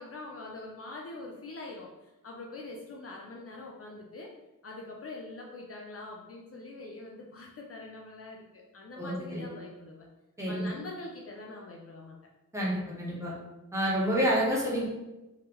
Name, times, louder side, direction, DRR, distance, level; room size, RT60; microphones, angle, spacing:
voice 1, 0.0-1.9 2.2-4.3 4.6-10.1 10.5-12.2, left 2 dB, 45° left, 0 dB, 0.4 m, -44 dB
voice 2, 9.0-9.4 10.4-10.7 12.5-13.3 13.7-14.8, equal, 10° right, -6 dB, 0.9 m, -28 dB
3.5 x 3.2 x 2.9 m, 1.0 s
wide cardioid pair, 180°, 33 cm